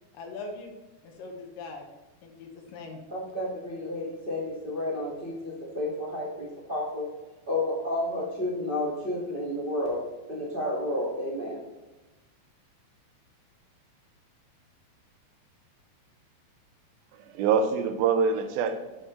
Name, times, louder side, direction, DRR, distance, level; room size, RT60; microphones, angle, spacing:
voice 1, 0.1-0.7 1.0-1.9 2.2-3.0, left 3 dB, 70° left, 2.6 m, -41 dB
voice 2, 3.1-7.1 7.5-10.0 10.3-11.6, left 1 dB, 25° right, 1.0 m, -31 dB
voice 3, 17.1-19.0, right 6 dB, 90° right, 2.5 m, -25 dB
7.7 x 7.4 x 3.2 m
omnidirectional pair, 4.2 m